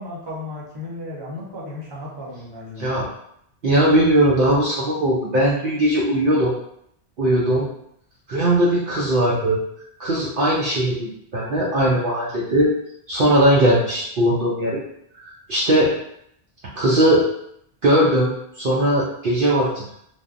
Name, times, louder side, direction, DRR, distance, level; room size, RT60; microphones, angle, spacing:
voice 1, 0.0-3.0 9.5-9.6, left 2 dB, 25° right, -5 dB, 0.7 m, -35 dB
voice 2, 3.6-6.5 7.2-7.6 8.3-9.6 10.0-12.7 13.1-14.8 15.2-15.9 16.8-17.2 17.8-18.3 18.6-19.9, right 1 dB, 60° right, -5 dB, 0.7 m, -19 dB
3.3 x 2.1 x 2.5 m, 0.73 s
omnidirectional pair, 1.1 m